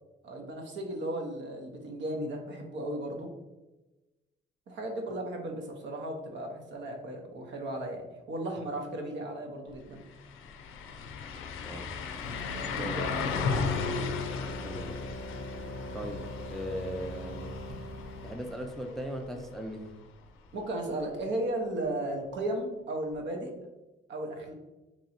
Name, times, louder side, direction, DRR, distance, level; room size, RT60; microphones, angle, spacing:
voice 1, 0.2-3.3 4.7-10.0 12.8-13.9 20.5-23.5 24.1-24.5, right 1 dB, 65° right, 2 dB, 0.8 m, -35 dB
sound 1, 9.7-9.8 10.1-19.9 20.3-20.4 23.1-23.2, left 5 dB, 85° left, 0.5 m, -36 dB
sound 2, 12.2-18.4, equal, 35° right, 1.1 m, -42 dB
voice 2, 12.7-13.0 14.6-15.0 15.9-16.2 16.5-17.6 18.2-19.9, equal, ahead, 4 dB, 0.4 m, -38 dB
2.9 x 2.7 x 4.1 m, 1.1 s
cardioid pair, 90°, 20 cm